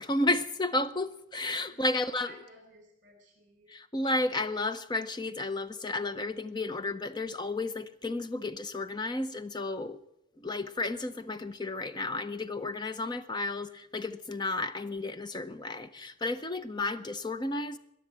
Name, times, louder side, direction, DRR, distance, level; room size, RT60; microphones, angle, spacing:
voice 1, 0.0-2.3 3.7-10.0 10.4-17.8, left 2 dB, 20° left, 0.6 m, -32 dB
voice 2, 1.7-3.7, right 1 dB, 40° right, 4.8 m, -55 dB
21.0 x 7.2 x 8.7 m
head